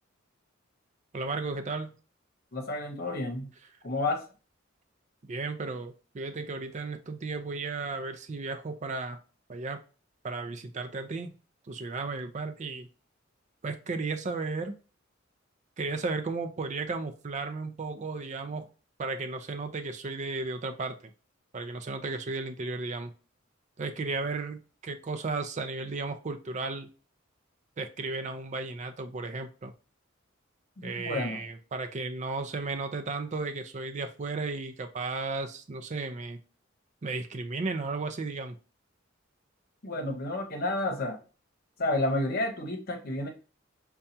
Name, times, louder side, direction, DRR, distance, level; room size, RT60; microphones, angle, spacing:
voice 1, 1.1-1.9 5.2-9.2 9.5-9.8 10.2-11.3 11.7-12.9 13.6-14.7 15.8-18.7 19.0-21.0 21.5-23.1 23.8-26.9 27.8-29.7 30.8-36.4 37.0-38.6, right 3 dB, 35° right, 0.4 m, -34 dB
voice 2, 2.5-3.5 3.8-4.2 30.8-31.4 39.8-41.2 41.8-43.3, left 2 dB, 50° left, 1.0 m, -30 dB
5.5 x 2.3 x 2.7 m
head